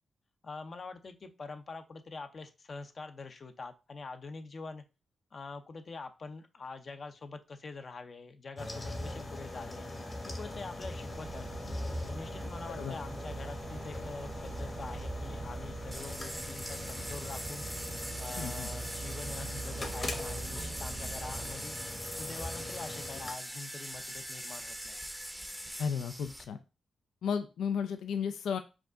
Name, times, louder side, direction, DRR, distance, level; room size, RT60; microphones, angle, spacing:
voice 1, 0.4-4.8 5.3-9.9 10.3-11.7 12.1-17.7 17.9-21.8 22.1-25.0, left 4 dB, 50° left, 7 dB, 0.6 m, -45 dB
sound 1, 8.6-23.3, left 1 dB, 30° left, 1.1 m, -41 dB
sound 2, 11.1-21.6, right 4 dB, 55° right, 0.5 m, -44 dB
sound 3, 15.9-26.4, equal, ahead, 0.6 m, -42 dB
voice 2, 18.4-18.7 25.8-26.6 27.2-28.6, left 7 dB, 90° left, 9 dB, 0.4 m, -34 dB
4.8 x 2.4 x 3.7 m, 0.29 s
cardioid pair, 80°, 0 cm